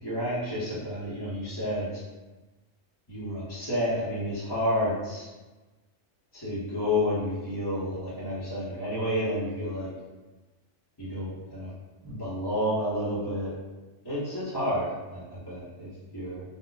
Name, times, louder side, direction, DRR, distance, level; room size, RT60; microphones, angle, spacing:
voice 1, 0.0-2.0 3.1-5.3 6.3-9.9 11.0-11.7 12.0-13.5 14.0-16.4, left 1 dB, 20° left, -11 dB, 0.9 m, -30 dB
4.3 x 2.2 x 2.3 m, 1.2 s
omnidirectional pair, 1.3 m